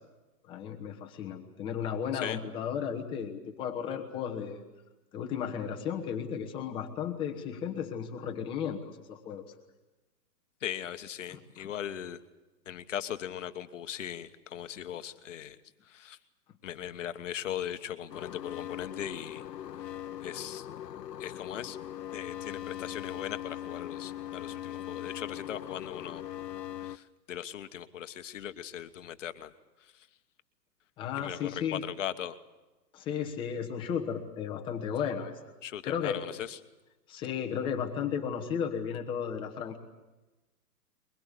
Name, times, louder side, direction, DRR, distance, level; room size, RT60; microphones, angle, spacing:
voice 1, 0.5-4.6 5.1-9.4 11.3-11.7 31.0-31.8 32.9-35.4 35.8-36.2 37.1-39.8, left 8 dB, 10° left, 2 dB, 1.2 m, -34 dB
voice 2, 10.6-12.2 12.6-15.6 15.8-16.2 16.6-19.4 19.8-19.9 20.2-20.7 21.2-21.8 22.1-26.2 26.8-29.5 29.8-30.1 31.2-32.4 35.6-36.6, left 10 dB, 45° left, 10 dB, 1.3 m, -39 dB
sound 1, 18.1-27.0, left 11 dB, 75° left, 1.0 m, -40 dB
23.0 x 21.0 x 8.4 m, 1.1 s
hypercardioid pair, 165°, 50 cm